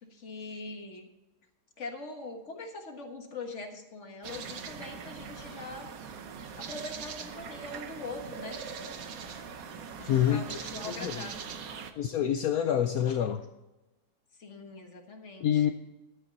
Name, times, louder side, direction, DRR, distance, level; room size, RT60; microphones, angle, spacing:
voice 1, 0.0-1.1 1.8-5.9 6.6-8.6 10.0-11.5 14.4-15.7, left 3 dB, 45° left, 4 dB, 1.6 m, -42 dB
sound 1, 4.2-11.9, right 6 dB, 65° right, 1.3 m, -41 dB
voice 2, 10.1-10.4 10.8-11.3 12.0-13.5 15.4-15.7, left 10 dB, 70° left, 8 dB, 1.0 m, -27 dB
12.0 x 8.8 x 4.0 m, 1.0 s
omnidirectional pair, 1.7 m